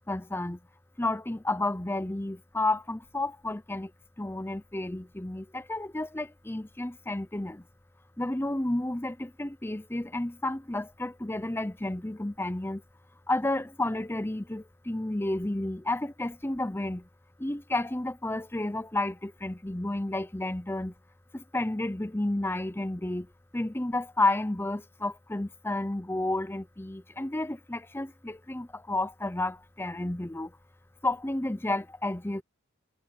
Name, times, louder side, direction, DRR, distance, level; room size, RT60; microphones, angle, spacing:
voice 1, 0.1-0.6 1.0-3.9 4.2-7.6 8.2-12.8 13.3-17.1 17.4-20.9 21.3-23.3 23.5-30.5 31.0-32.4, left 2 dB, 10° left, 0.7 m, -31 dB
head